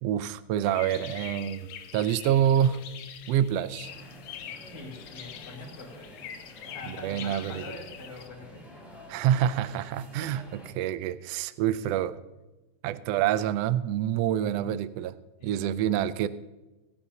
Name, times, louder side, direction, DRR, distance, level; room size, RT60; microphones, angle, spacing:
voice 1, 0.0-2.9 3.3-3.9 6.9-7.6 9.1-12.2 12.8-15.2 15.4-16.3, right 10 dB, 85° right, 14 dB, 1.4 m, -27 dB
sound 1, 0.6-8.3, left 9 dB, 70° left, 1.3 m, -44 dB
sound 2, 3.8-10.7, left 1 dB, ahead, 3.1 m, -49 dB
voice 2, 4.7-6.2 6.6-8.7 14.5-14.7 15.4-15.6, left 3 dB, 85° left, -4 dB, 4.7 m, -44 dB
21.0 x 10.0 x 2.8 m, 1.1 s
omnidirectional pair, 3.4 m